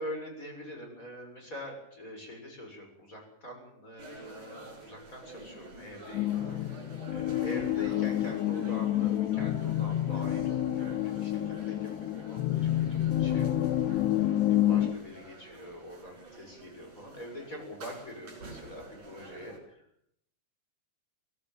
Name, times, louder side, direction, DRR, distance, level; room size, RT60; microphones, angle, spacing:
voice 1, 0.0-6.8 7.1-14.0 14.4-19.8, equal, 20° left, 2 dB, 7.2 m, -44 dB
sound 1, 4.0-19.6, right 2 dB, 50° right, 8.4 m, -49 dB
sound 2, 6.1-14.9, left 12 dB, 85° left, 3.2 m, -29 dB
23.0 x 17.0 x 9.3 m, 0.72 s
omnidirectional pair, 4.7 m